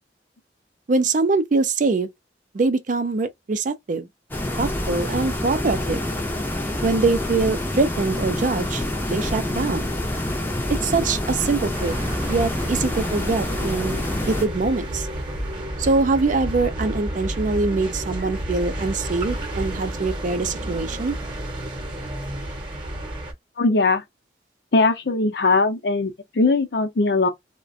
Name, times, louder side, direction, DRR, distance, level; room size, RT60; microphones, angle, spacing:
voice 1, 0.9-2.1 2.5-4.1 4.6-6.1 6.8-8.8 9.1-9.9 10.8-12.0 12.3-14.0 14.3-15.1 15.8-21.2, right 3 dB, 45° right, 0.4 m, -23 dB
sound 1, 4.3-14.5, left 1 dB, 10° left, 0.6 m, -27 dB
sound 2, 11.7-23.3, right 1 dB, 30° right, 0.9 m, -31 dB
voice 2, 23.6-24.0 24.7-27.3, left 3 dB, 65° left, 0.6 m, -20 dB
2.4 x 2.2 x 2.5 m
head